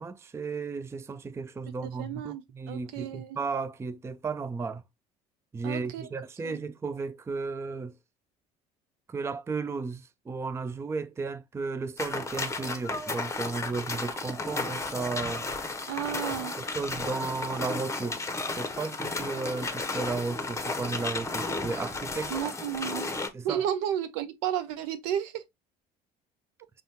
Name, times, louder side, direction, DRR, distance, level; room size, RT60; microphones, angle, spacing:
voice 1, 0.0-4.8 5.5-8.0 9.1-15.5 16.3-18.2 18.6-22.3 23.3-23.7, right 4 dB, 15° right, 0.4 m, -34 dB
voice 2, 1.8-3.4 5.6-6.1 6.4-6.6 15.9-16.5 22.3-23.1 23.4-25.4, right 10 dB, 65° right, 0.6 m, -32 dB
sound 1, 12.0-23.3, left 3 dB, 15° left, 0.9 m, -33 dB
5.1 x 2.3 x 3.4 m
figure-of-eight pair, 60°, 20 cm